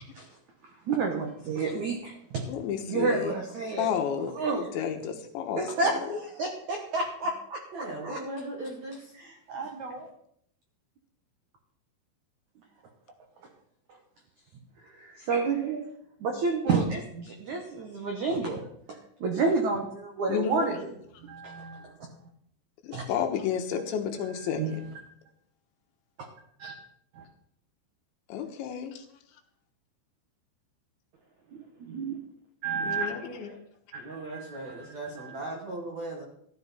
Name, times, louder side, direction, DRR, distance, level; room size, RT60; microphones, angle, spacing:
voice 1, 0.9-2.4 2.9-3.9 4.4-4.7 5.6-7.6 8.0-8.2 9.5-10.1 15.0-15.9 16.2-18.6 19.2-20.7 21.2-21.9 22.9-23.0 24.6-24.7 26.6-26.7 27.2-27.3 31.9-32.2 32.6-33.4 33.9-34.0 34.3-34.4, right 4 dB, 80° right, 3 dB, 1.7 m, -30 dB
voice 2, 2.5-3.3 3.8-6.2 20.3-20.8 22.8-24.8 28.3-29.1 32.8-33.5, left 8 dB, 75° left, 5 dB, 3.2 m, -32 dB
voice 3, 7.7-9.2 9.6-9.7 33.9-36.2, right 2 dB, 55° right, 0 dB, 2.1 m, -38 dB
14.0 x 13.0 x 4.3 m, 0.70 s
omnidirectional pair, 5.7 m